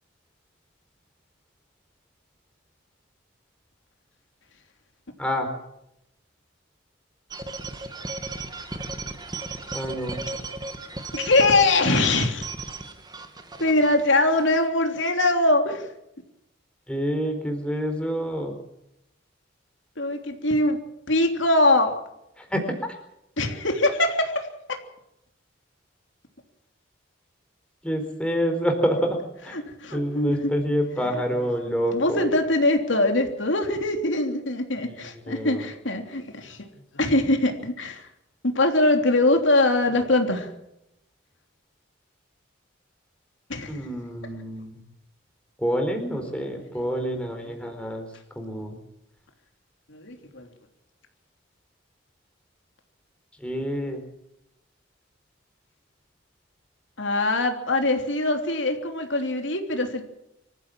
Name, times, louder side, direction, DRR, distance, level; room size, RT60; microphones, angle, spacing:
voice 1, 5.2-5.5 9.7-10.2 16.9-18.6 22.4-23.0 27.8-29.6 29.9-32.3 34.8-35.0 35.2-35.6 43.7-44.8 45.6-48.8 53.4-54.0, equal, 5° left, 4 dB, 4.2 m, -27 dB
sound 1, 7.3-14.6, right 3 dB, 20° right, 2.2 m, -36 dB
voice 2, 11.1-12.4 13.6-15.9 20.0-20.8 21.1-21.9 23.4-24.5 29.6-30.3 31.9-36.7 36.9-38.1 38.5-40.5 43.5-43.7 47.6-47.7 49.9-50.5 57.0-60.0, left 2 dB, 70° left, 4 dB, 3.2 m, -22 dB
25.5 x 15.0 x 7.5 m, 0.84 s
head